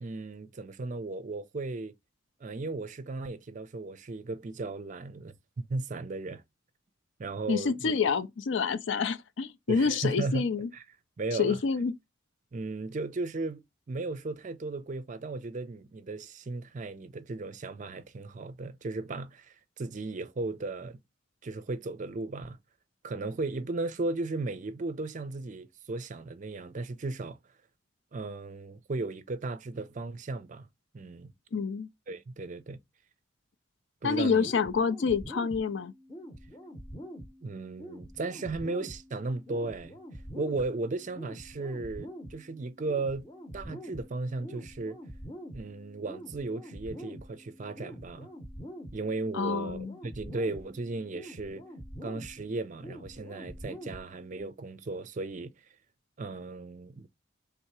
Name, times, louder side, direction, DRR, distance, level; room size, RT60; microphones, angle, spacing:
voice 1, 0.0-1.9 2.4-6.4 7.2-7.9 9.7-10.5 10.7-10.8 11.2-11.6 12.5-21.0 21.4-22.6 23.0-27.4 28.1-30.7 30.9-31.3 32.1-32.8 34.0-34.5 37.4-39.9 40.4-43.3 43.5-45.0 45.5-48.3 48.9-51.6 52.0-55.5 56.2-57.1, right 3 dB, 40° right, 0.4 m, -36 dB
voice 2, 7.5-10.7 11.3-11.9 31.5-31.9 34.0-35.9 49.3-49.9, left 5 dB, 60° left, 0.4 m, -28 dB
sound 1, 34.4-54.4, equal, 20° left, 0.8 m, -46 dB
3.5 x 2.8 x 4.6 m
head